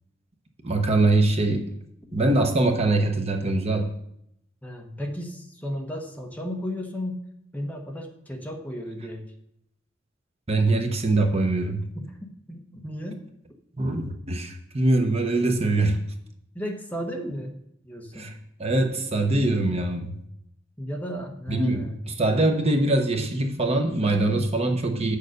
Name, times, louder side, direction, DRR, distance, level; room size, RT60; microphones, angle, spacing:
voice 1, 0.6-1.6 2.1-3.9 10.5-11.8 13.8-16.0 18.1-18.3 18.6-20.1 21.5-25.2, right 2 dB, 30° right, 4 dB, 0.9 m, -23 dB
voice 2, 4.6-7.2 7.5-9.3 11.9-12.2 12.5-13.2 16.5-18.3 18.7-18.9 20.8-22.0, equal, 10° left, 1 dB, 1.1 m, -34 dB
8.1 x 6.7 x 6.5 m, 0.76 s
head